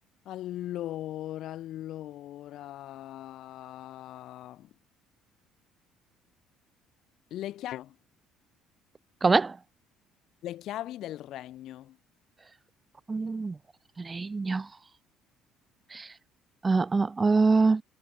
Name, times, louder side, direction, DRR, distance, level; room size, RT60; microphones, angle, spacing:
voice 1, 0.2-4.7 7.3-8.0 10.4-12.0, left 13 dB, 65° left, 2.5 m, -39 dB
voice 2, 9.2-9.6 13.1-13.6 14.0-14.7 15.9-16.1 16.6-17.8, right 4 dB, 25° right, 0.5 m, -24 dB
hypercardioid pair, 65°, 0 cm